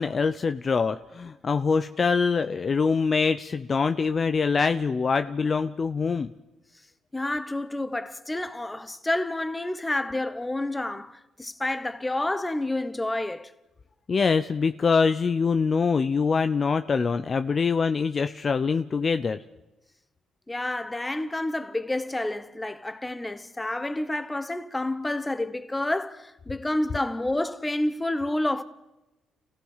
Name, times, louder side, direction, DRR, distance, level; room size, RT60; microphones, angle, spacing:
voice 1, 0.0-6.3 14.1-19.4, left 5 dB, 40° left, 0.6 m, -24 dB
voice 2, 7.1-13.5 20.5-28.6, left 1 dB, 15° left, 1.1 m, -29 dB
29.5 x 16.0 x 5.7 m
cardioid pair, 90°, 0 cm